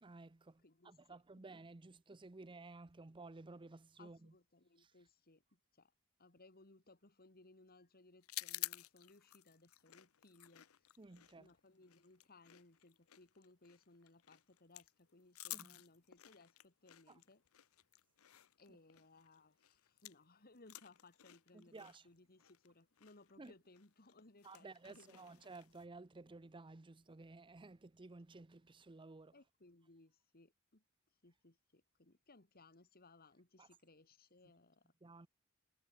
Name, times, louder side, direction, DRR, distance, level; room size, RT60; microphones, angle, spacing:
voice 1, 0.0-4.3 4.8-4.9 11.0-11.5 15.5-15.7 17.1-17.2 21.5-22.1 23.4-23.5 24.4-29.3 33.6-33.7 35.0-35.3, right 3 dB, 25° right, 0.6 m, -55 dB
voice 2, 0.6-1.2 4.0-5.9 6.2-11.0 11.3-17.4 18.6-25.5 29.3-30.8 31.2-34.9, left 2 dB, 45° left, 2.6 m, -65 dB
sound 1, 8.2-20.3 20.6-25.9, left 18 dB, 90° left, 0.7 m, -52 dB
head